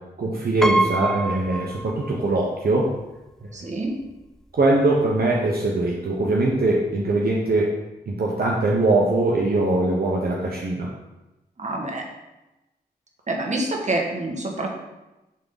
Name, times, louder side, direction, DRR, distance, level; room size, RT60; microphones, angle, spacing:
voice 1, 0.2-2.9 3.4-3.5 4.5-7.7 8.1-10.9, right 2 dB, 65° right, -2 dB, 1.0 m, -22 dB
Piano, 0.6-2.4 2.8-2.9 4.0-4.1 4.4-4.7, right 2 dB, 5° left, 0.3 m, -25 dB
voice 2, 3.5-4.0 11.6-12.0 13.3-14.7, right 2 dB, 45° right, 0 dB, 1.5 m, -27 dB
10.5 x 3.7 x 4.0 m, 1.0 s
wide cardioid pair, 80°, 17 cm